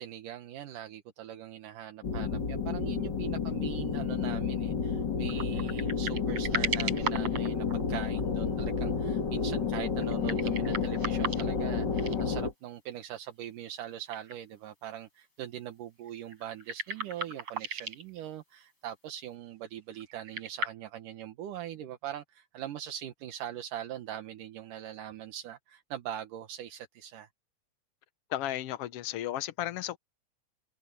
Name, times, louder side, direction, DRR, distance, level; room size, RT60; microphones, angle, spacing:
voice 1, 0.0-27.3, right 11 dB, 80° right, 2.8 m, -42 dB
sound 1, 2.0-12.5, left 5 dB, 35° left, 2.3 m, -31 dB
sound 2, 5.3-8.2 10.0-11.6 11.9-12.2 13.4-13.5 14.1-14.3 14.6-14.7 16.0-18.1 20.0-20.7, right 3 dB, 50° right, 5.8 m, -36 dB
voice 2, 28.3-30.0, left 13 dB, 80° left, 1.3 m, -34 dB
omnidirectional pair, 3.7 m